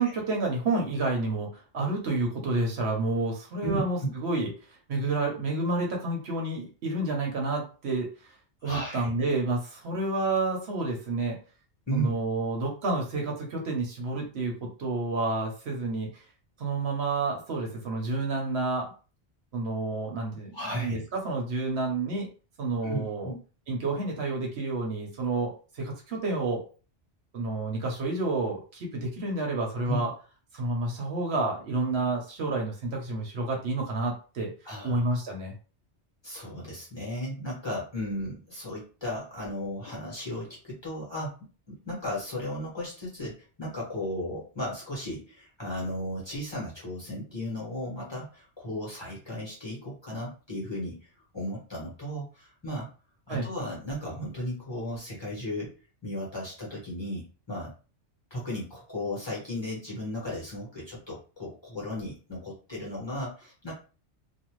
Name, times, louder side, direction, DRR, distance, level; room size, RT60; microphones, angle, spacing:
voice 1, 0.0-4.5 4.9-8.1 8.6-11.4 11.9-16.2 16.6-18.9 19.5-22.3 22.6-23.3 23.7-26.6 27.3-30.1 30.5-34.5 34.8-35.5 53.3-53.5, right 2 dB, 65° right, 0 dB, 1.0 m, -29 dB
voice 2, 3.6-4.1 8.6-9.1 11.9-12.1 20.5-21.0 22.8-23.3 29.9-30.0 34.6-35.0 36.2-41.3 41.7-51.0 51.3-52.9 53.3-57.7 58.3-63.7, equal, 25° left, -5 dB, 1.1 m, -35 dB
2.5 x 2.3 x 3.0 m, 0.36 s
omnidirectional pair, 1.2 m